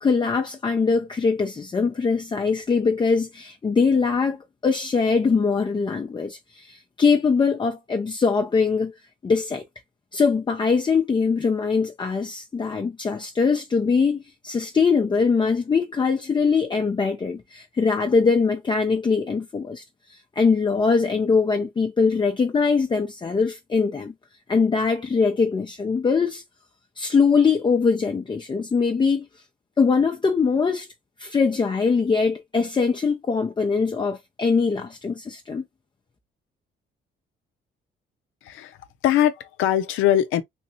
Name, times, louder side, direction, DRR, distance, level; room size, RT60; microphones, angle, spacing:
voice 1, 0.0-8.9 9.2-9.6 10.1-19.8 20.1-24.1 24.5-26.4 27.0-29.3 29.8-30.9 31.2-35.6, left 5 dB, 25° left, 0.5 m, -22 dB
voice 2, 38.4-38.8 39.0-40.4, left 11 dB, 90° left, 0.5 m, -21 dB
3.5 x 2.7 x 2.8 m
cardioid pair, 90°, 20 cm